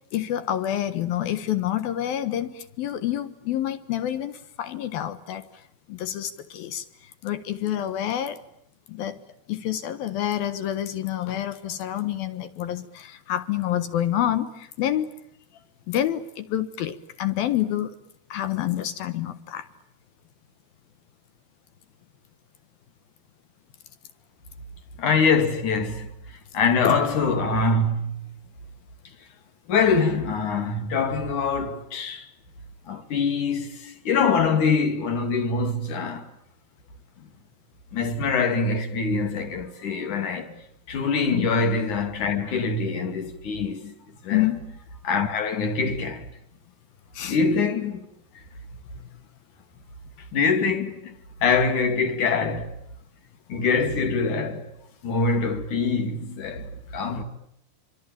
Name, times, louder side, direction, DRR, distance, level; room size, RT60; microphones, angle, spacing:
voice 1, 0.1-5.4 5.9-6.8 7.2-8.4 8.9-9.2 9.5-15.1 15.9-17.9 18.3-19.7 26.8-27.0 41.3-41.5 44.3-44.6 47.2-47.4 52.3-52.4, left 12 dB, 65° left, 2.6 m, -28 dB
voice 2, 25.0-26.1 26.5-28.3 29.7-32.3 32.9-36.3 37.9-40.5 40.9-43.9 44.2-44.5 45.0-46.3 47.2-48.1 50.3-52.7 53.5-54.7 55.0-57.2, left 4 dB, 45° left, 3.5 m, -24 dB
26.5 x 25.5 x 8.8 m
omnidirectional pair, 5.6 m